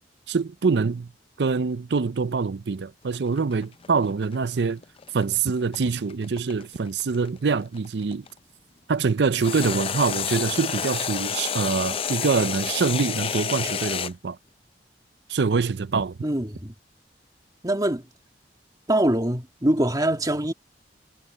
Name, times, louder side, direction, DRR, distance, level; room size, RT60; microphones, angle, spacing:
voice 1, 0.3-1.1 1.4-4.8 5.1-8.2 8.9-14.4 15.3-16.2, right 5 dB, 75° right, 0.5 m, -25 dB
sound 1, 3.1-8.3 9.4-14.1, left 7 dB, 35° left, 0.5 m, -30 dB
voice 2, 16.2-16.7 17.6-18.1 18.9-20.5, right 1 dB, 20° right, 2.4 m, -23 dB
head